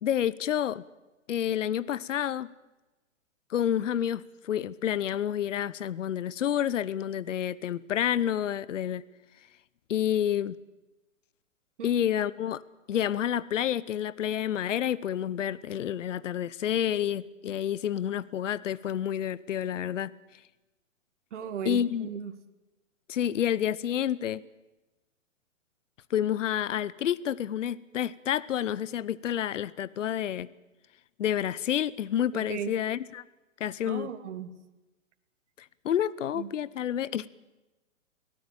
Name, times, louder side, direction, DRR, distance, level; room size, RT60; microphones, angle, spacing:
voice 1, 0.0-0.8 1.3-2.5 3.5-9.0 9.9-10.5 11.8-12.6 12.9-20.1 21.6-22.1 23.1-24.4 26.1-30.5 31.2-33.2 33.6-34.1 35.8-37.3, left 10 dB, 65° left, 20 dB, 1.0 m, -29 dB
voice 2, 21.3-22.4 32.3-32.8 33.8-34.5 36.3-36.5, right 8 dB, 60° right, 9 dB, 2.4 m, -36 dB
24.0 x 17.5 x 8.9 m, 1.1 s
hypercardioid pair, 125°, 40 cm